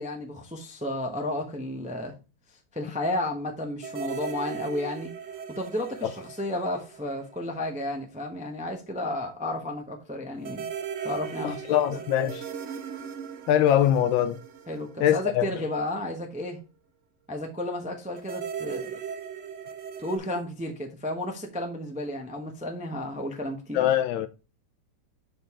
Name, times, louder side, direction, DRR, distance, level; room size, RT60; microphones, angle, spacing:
voice 1, 0.0-2.1 2.7-5.1 5.5-10.7 11.0-11.8 14.7-16.6 17.3-19.0 20.0-23.9, left 1 dB, 5° right, 0.5 m, -32 dB
sound 1, 3.8-7.6 7.8-7.9 10.4-15.8 18.2-20.2, right 7 dB, 75° right, 0.6 m, -38 dB
voice 2, 11.4-12.4 13.5-14.4 15.0-15.5 23.7-24.3, left 11 dB, 75° left, 1.3 m, -23 dB
6.3 x 5.2 x 3.7 m
omnidirectional pair, 2.2 m